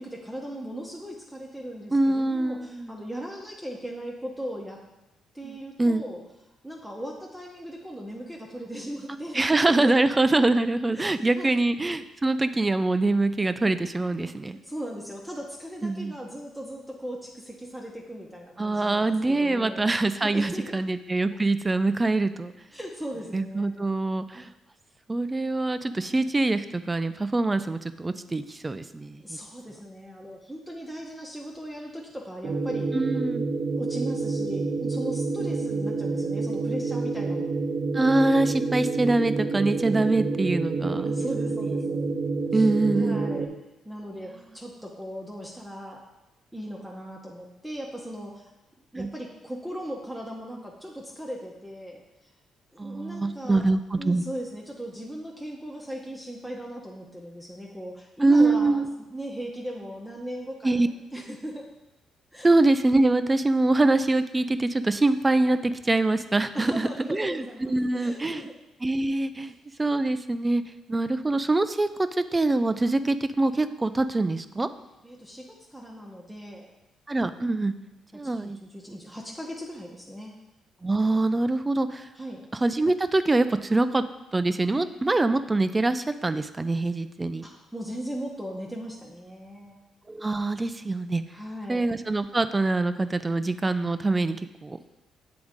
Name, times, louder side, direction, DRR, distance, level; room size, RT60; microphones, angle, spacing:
voice 1, 0.0-4.8 5.3-6.2 6.6-9.9 10.9-11.6 14.4-19.9 20.2-20.7 22.7-23.8 24.4-24.5 29.2-33.0 33.8-37.6 41.0-42.1 42.4-42.7 42.9-43.5 43.8-46.0 46.5-48.5 48.9-52.3 52.7-53.7 54.0-61.6 62.3-62.5 66.5-68.5 75.0-75.4 75.7-76.7 78.1-80.3 82.1-82.4 87.4-89.8 91.3-91.9, equal, 5° right, -2 dB, 0.9 m, -38 dB
voice 2, 1.9-3.0 5.4-6.0 9.3-14.6 15.8-16.1 18.6-22.5 23.3-24.5 25.1-29.4 32.9-33.5 37.9-41.1 42.5-43.2 49.0-49.1 52.8-54.2 58.2-58.9 60.6-60.9 62.4-68.4 68.8-69.5 69.8-70.6 70.9-74.7 77.1-77.7 78.1-78.6 80.8-82.1 82.6-84.0 84.3-87.5 90.1-91.2 91.7-94.4 94.6-94.8, right 2 dB, 20° right, 12 dB, 0.3 m, -24 dB
sound 1, 32.4-43.5, right 3 dB, 50° right, 0.7 m, -28 dB
7.9 x 3.8 x 3.6 m, 0.94 s
cardioid pair, 90°, 0 cm